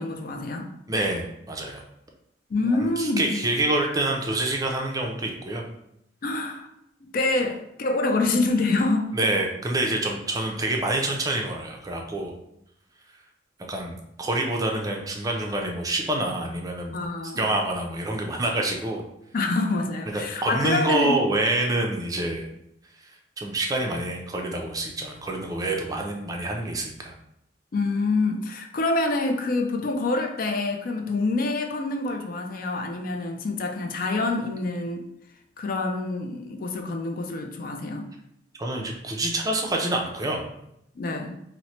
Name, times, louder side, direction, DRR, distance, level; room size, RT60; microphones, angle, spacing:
voice 1, 0.0-0.7 2.5-3.4 6.2-6.7 7.0-9.1 16.9-17.4 19.3-21.2 27.7-35.1 35.6-38.1 41.0-41.4, left 2 dB, 55° left, 5 dB, 0.4 m, -26 dB
voice 2, 0.9-1.8 2.7-5.6 9.1-12.3 13.7-19.0 20.1-22.5 23.0-27.1 38.6-40.4, right 2 dB, 20° right, 1 dB, 0.4 m, -27 dB
3.0 x 2.1 x 4.1 m, 0.78 s
head